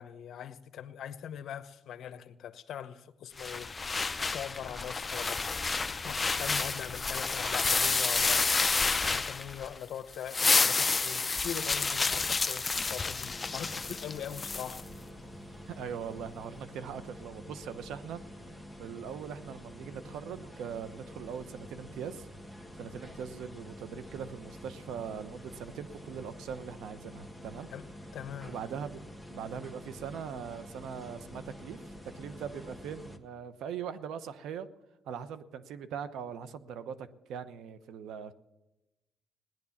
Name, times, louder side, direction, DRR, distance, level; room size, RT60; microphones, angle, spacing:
voice 1, 0.0-3.7 4.3-8.6 9.1-12.6 12.9-14.8 27.7-27.8 28.1-28.5, left 9 dB, 70° left, 0.9 m, -42 dB
sound 1, 3.4-9.8 10.1-14.8, left 4 dB, 30° left, 0.6 m, -30 dB
sound 2, 13.2-33.2, equal, 5° right, 1.7 m, -48 dB
voice 2, 15.7-18.5 18.8-22.3 22.8-27.7 28.4-29.0 29.3-34.7 35.0-38.3, right 7 dB, 85° right, 0.9 m, -41 dB
17.5 x 10.5 x 7.2 m
cardioid pair, 90°, 0 cm